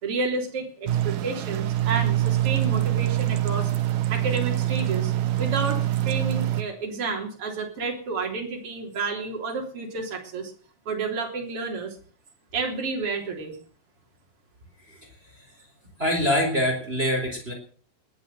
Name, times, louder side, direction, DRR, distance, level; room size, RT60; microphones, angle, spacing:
voice 1, 0.0-3.7 4.1-10.5 10.9-12.0 12.5-13.6, right 4 dB, 40° right, 2 dB, 4.3 m, -30 dB
sound 1, 0.9-6.6, right 13 dB, 70° right, 2.7 m, -25 dB
voice 2, 16.0-17.5, equal, 15° right, 3 dB, 4.1 m, -24 dB
20.0 x 9.1 x 7.7 m, 0.43 s
omnidirectional pair, 4.0 m